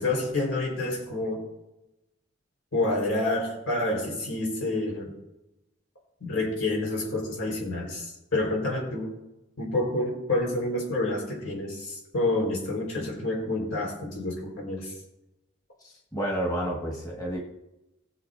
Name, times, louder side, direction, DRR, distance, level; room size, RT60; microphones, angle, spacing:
voice 1, 0.0-1.4 2.7-5.1 6.2-9.1 9.6-14.9, left 2 dB, 85° left, -1 dB, 4.4 m, -28 dB
voice 2, 15.8-17.4, right 1 dB, 20° left, -2 dB, 1.6 m, -30 dB
19.5 x 7.3 x 2.7 m, 0.93 s
head